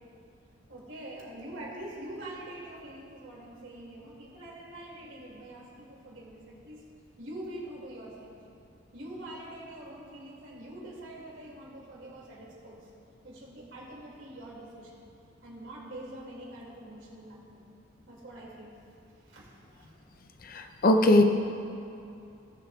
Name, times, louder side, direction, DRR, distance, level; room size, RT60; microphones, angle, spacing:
voice 1, 0.7-6.8 7.2-8.4 8.9-12.9 13.2-15.1 15.4-17.7 18.1-18.7 19.2-19.9, right 1 dB, 75° right, -3 dB, 2.3 m, -44 dB
voice 2, 20.4-21.2, left 1 dB, 45° left, 6 dB, 0.6 m, -21 dB
18.0 x 7.2 x 2.3 m, 2.7 s
head